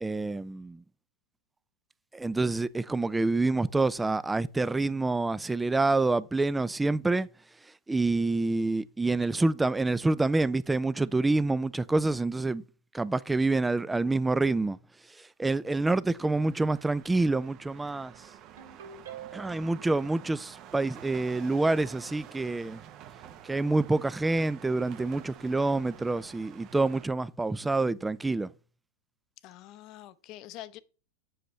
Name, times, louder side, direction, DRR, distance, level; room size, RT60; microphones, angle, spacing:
voice 1, 0.0-0.8 2.1-7.3 7.9-12.6 12.9-14.8 15.4-18.1 19.3-22.8 23.5-28.5, right 3 dB, 10° right, 0.3 m, -27 dB
sound 1, 16.2-27.1, right 10 dB, 40° right, 0.9 m, -49 dB
Ringtone, 18.6-19.7, right 9 dB, 85° right, 2.2 m, -45 dB
voice 2, 29.4-30.8, left 14 dB, 45° left, 0.6 m, -45 dB
7.8 x 6.6 x 3.1 m
hypercardioid pair, 125°, 0 cm